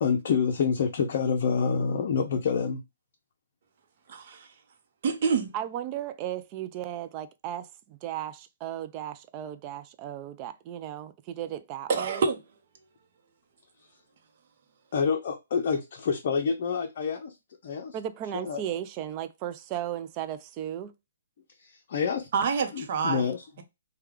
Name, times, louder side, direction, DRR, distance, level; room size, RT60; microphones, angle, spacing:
voice 1, 0.0-2.8 14.9-17.4 17.6-17.9 18.3-18.6 21.6-22.3 22.7-23.4, left 6 dB, 50° left, 0.6 m, -27 dB
voice 2, 4.1-4.5 5.0-5.5 11.9-12.4 22.3-23.3, right 5 dB, 50° right, 0.7 m, -27 dB
voice 3, 5.5-12.2 17.9-20.9, right 11 dB, 30° right, 0.4 m, -35 dB
3.4 x 2.2 x 3.2 m
hypercardioid pair, 145°, 0 cm